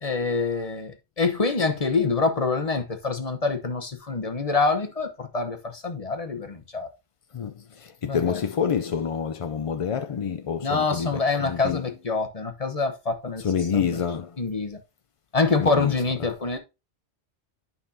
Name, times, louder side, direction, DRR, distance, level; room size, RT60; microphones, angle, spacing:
voice 1, 0.0-6.9 8.0-8.4 10.6-13.4 13.7-13.9 14.4-14.8 15.3-16.6, left 4 dB, 35° left, 0.9 m, -26 dB
voice 2, 7.3-11.8 13.4-14.4 15.6-16.0, left 7 dB, 55° left, 0.4 m, -28 dB
9.6 x 5.4 x 2.7 m
omnidirectional pair, 1.1 m